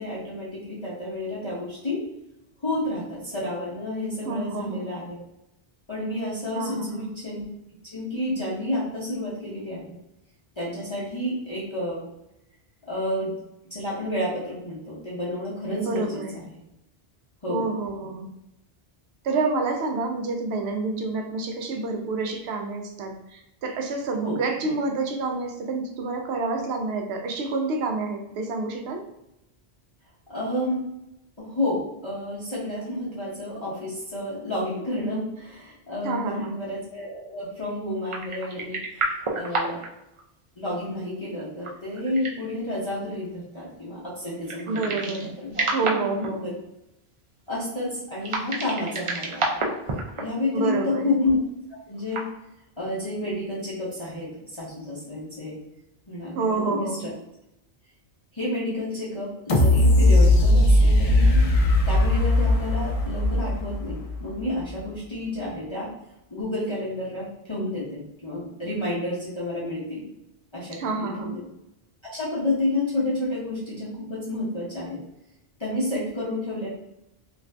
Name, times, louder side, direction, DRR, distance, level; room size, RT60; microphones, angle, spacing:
voice 1, 0.0-2.0 2.6-5.2 5.9-7.4 7.9-9.9 10.6-12.0 12.8-13.3 13.7-16.6 17.4-17.7 24.2-24.4 30.3-30.8 31.4-38.8 39.4-39.8 40.6-45.0 45.4-45.6 46.4-46.5 47.5-49.5 50.2-51.4 51.9-52.2 52.8-55.6 56.1-57.1 58.3-61.4 61.9-65.9 66.3-70.0 70.5-71.4 72.1-75.0 75.6-76.7, left 1 dB, 30° left, -9 dB, 0.8 m, -30 dB
voice 2, 4.2-4.9 6.6-7.1 15.8-16.3 17.5-18.3 19.2-29.0 36.0-36.6 44.7-45.4 45.7-46.5 50.5-51.0 56.4-57.1 70.8-71.4, right 3 dB, 75° right, 3 dB, 0.8 m, -28 dB
sound 1, 38.1-39.9 40.2-40.3 41.4-42.5 44.4-45.3 45.5-46.3 48.2-50.2 50.5-50.6 52.0-52.3, right 2 dB, 45° right, 0.4 m, -29 dB
sound 2, 59.5-64.4 64.8-64.9, left 1 dB, 50° left, 0.4 m, -19 dB
2.5 x 2.5 x 3.2 m, 0.87 s
omnidirectional pair, 1.1 m